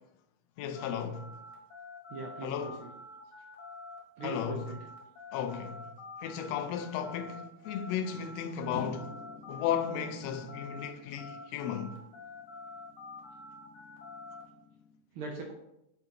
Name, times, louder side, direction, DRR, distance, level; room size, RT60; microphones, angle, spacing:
voice 1, 0.6-1.3 2.4-2.8 4.2-4.7 5.3-5.8 6.2-9.1 9.5-12.0, left 8 dB, 75° left, 1.6 m, -35 dB
sound 1, 0.7-10.9 11.2-14.4, left 3 dB, 50° left, 2.2 m, -47 dB
voice 2, 2.1-2.9 4.2-4.9 15.1-15.5, right 3 dB, 80° right, 1.2 m, -40 dB
sound 2, 8.7-14.9, left 3 dB, 55° right, 3.6 m, -50 dB
8.1 x 5.4 x 2.9 m
omnidirectional pair, 3.3 m